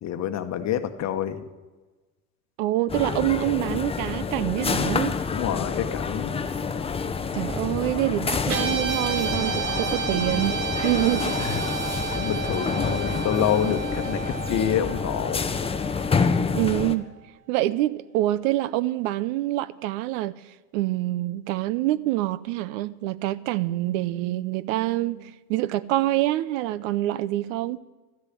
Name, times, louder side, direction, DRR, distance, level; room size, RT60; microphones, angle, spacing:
voice 1, 0.0-1.4 5.3-6.4 11.4-11.6 12.1-15.5, left 9 dB, 35° left, 1.2 m, -27 dB
voice 2, 2.6-5.1 7.3-11.4 16.5-17.1 17.5-20.4 20.7-27.8, right 16 dB, 60° right, 0.6 m, -26 dB
sound 1, 2.9-17.0, left 5 dB, 15° left, 0.7 m, -28 dB
Guitar, 8.5-16.9, right 7 dB, 90° right, 2.0 m, -32 dB
13.0 x 6.6 x 9.8 m
hypercardioid pair, 95°, 44 cm